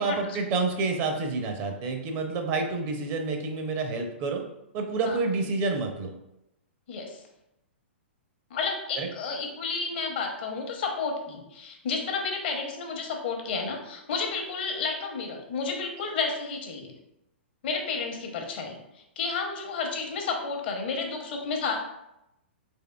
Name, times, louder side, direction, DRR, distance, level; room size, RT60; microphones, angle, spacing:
voice 1, 0.0-4.4 4.7-6.1 9.0-9.1, right 3 dB, 35° right, 4 dB, 0.5 m, -28 dB
voice 2, 6.9-7.2 8.5-16.9 17.6-21.8, left 4 dB, 55° left, 3 dB, 0.7 m, -31 dB
3.5 x 3.3 x 2.2 m, 0.85 s
figure-of-eight pair, 115°, 6 cm